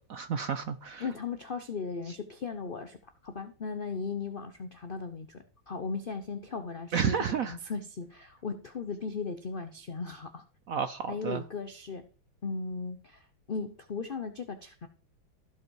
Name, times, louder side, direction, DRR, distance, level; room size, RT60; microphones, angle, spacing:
voice 1, 0.1-1.1 6.9-7.6 10.7-11.4, right 7 dB, 70° right, 11 dB, 0.8 m, -31 dB
voice 2, 1.0-10.4 11.1-12.0 12.4-14.9, left 4 dB, 75° left, 9 dB, 0.5 m, -37 dB
15.0 x 5.3 x 4.7 m, 0.40 s
omnidirectional pair, 2.1 m